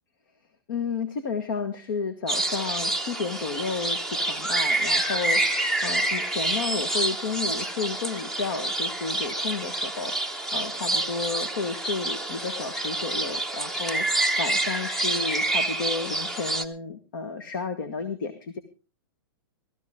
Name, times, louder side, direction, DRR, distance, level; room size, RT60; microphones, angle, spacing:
voice 1, 0.7-18.6, left 5 dB, 60° left, 10 dB, 1.8 m, -32 dB
sound 1, 2.3-16.6, right 2 dB, 5° left, 0.8 m, -27 dB
16.0 x 14.0 x 3.7 m, 0.32 s
hypercardioid pair, 160°, 13 cm